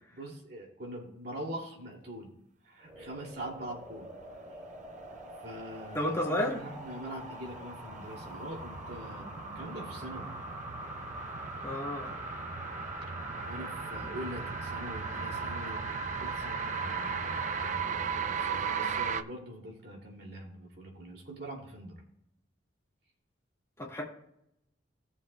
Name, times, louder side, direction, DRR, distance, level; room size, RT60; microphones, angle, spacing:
voice 1, 0.1-2.3 2.6-4.5 5.4-10.3 13.5-15.8 16.2-21.9, right 1 dB, 55° right, -1 dB, 2.6 m, -43 dB
sound 1, 2.8-17.8 18.2-18.3, equal, 15° right, 2.6 m, -44 dB
voice 2, 5.9-6.6 11.6-12.2 23.8-24.0, left 1 dB, 15° left, -2 dB, 1.8 m, -31 dB
sound 2, 6.4-19.2, right 6 dB, 40° right, 0.4 m, -37 dB
18.0 x 7.2 x 2.3 m, 0.78 s
head